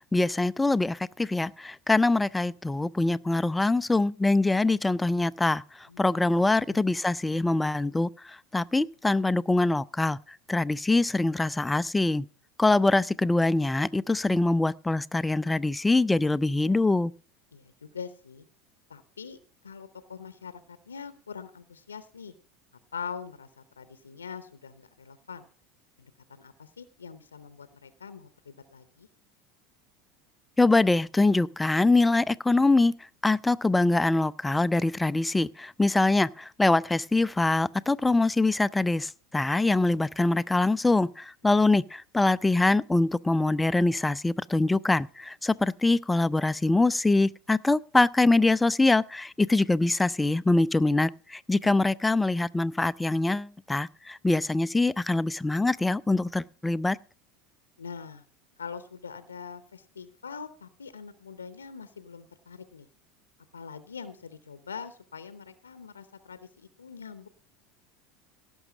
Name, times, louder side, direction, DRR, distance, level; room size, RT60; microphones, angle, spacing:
voice 1, 0.1-5.6 6.0-10.2 10.5-12.2 12.6-17.1 30.6-32.9 33.2-57.0, left 2 dB, 10° left, 0.4 m, -24 dB
voice 2, 17.5-18.4 18.9-19.4 19.6-22.3 22.9-25.5 26.0-29.1 42.5-42.6 51.6-51.8 57.8-58.2 58.6-62.9 63.5-67.3, left 6 dB, 85° left, 0.7 m, -43 dB
17.0 x 6.3 x 5.0 m
figure-of-eight pair, 75°, 0 cm